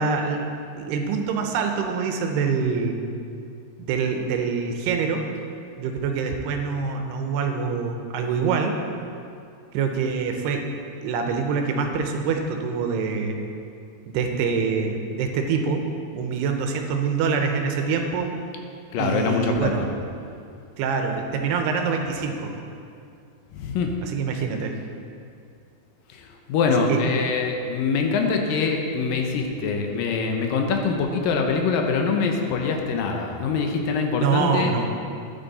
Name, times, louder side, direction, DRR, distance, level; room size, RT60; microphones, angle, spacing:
voice 1, 0.0-3.0 3.8-5.3 5.8-8.8 9.7-10.7 11.0-13.4 14.1-15.8 16.1-18.3 19.0-19.8 20.8-22.5 24.0-24.8 26.9-27.0 34.2-34.9, right 5 dB, 80° right, 4 dB, 2.9 m, -25 dB
voice 2, 18.9-19.9 23.5-23.9 26.1-34.8, left 4 dB, 75° left, 2 dB, 2.2 m, -24 dB
12.5 x 9.2 x 4.1 m, 2.5 s
omnidirectional pair, 4.9 m